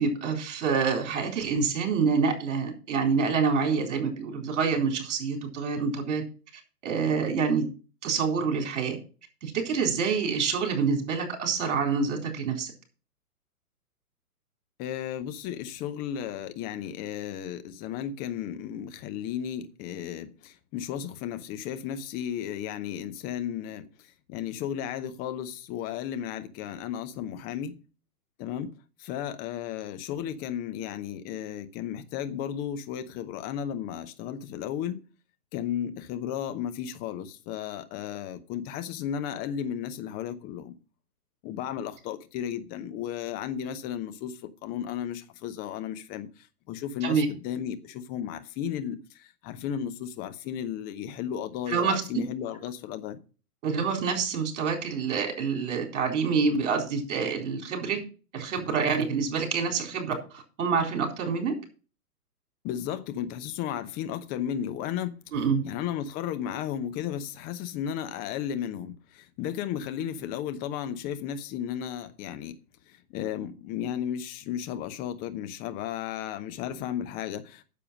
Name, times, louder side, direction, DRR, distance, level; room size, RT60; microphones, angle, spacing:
voice 1, 0.0-6.2 6.8-7.7 8.0-9.0 9.4-12.7 47.0-47.3 51.7-52.0 53.6-58.0 58.3-61.5 65.3-65.6, right 5 dB, 50° right, 4.1 m, -27 dB
voice 2, 14.8-23.8 24.3-27.7 28.4-28.7 29.0-35.0 35.5-40.7 41.4-46.3 46.7-53.2 62.6-65.2 65.6-72.6 72.9-77.6, left 9 dB, 20° left, 0.9 m, -34 dB
9.8 x 7.0 x 6.3 m
figure-of-eight pair, 120°, 46 cm